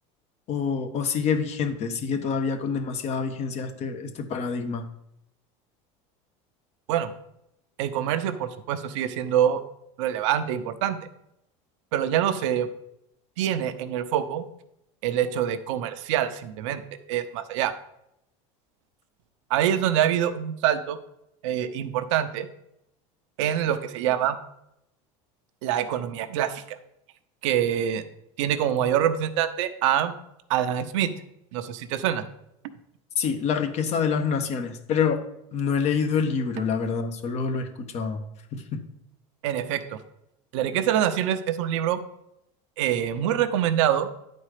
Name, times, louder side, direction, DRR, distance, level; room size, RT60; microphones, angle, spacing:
voice 1, 0.5-4.8 33.2-35.2 35.5-38.2 38.5-38.8, left 6 dB, 45° left, 7 dB, 1.2 m, -26 dB
voice 2, 7.8-9.6 10.0-11.0 11.9-12.7 13.4-14.4 15.0-16.8 17.1-17.7 19.5-21.0 21.4-22.5 23.4-24.4 25.6-26.8 27.4-28.0 28.4-30.1 30.5-31.1 31.5-32.2 39.4-40.0 40.5-42.0 42.8-44.1, right 10 dB, 80° right, 10 dB, 0.8 m, -25 dB
10.0 x 4.3 x 4.9 m, 0.80 s
supercardioid pair, 120°, 16 cm